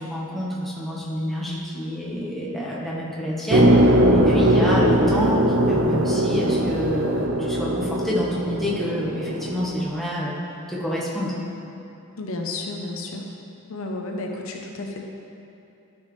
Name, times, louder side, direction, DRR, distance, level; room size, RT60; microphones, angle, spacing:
voice 1, 0.0-10.3 10.7-11.3, equal, ahead, -6 dB, 1.2 m, -27 dB
sound 1, 3.5-9.8, right 1 dB, 55° right, 0.7 m, -20 dB
voice 2, 4.4-4.7 12.2-13.3 13.7-15.0, left 2 dB, 70° left, 1 dB, 0.8 m, -31 dB
13.0 x 6.2 x 3.3 m, 2.7 s
head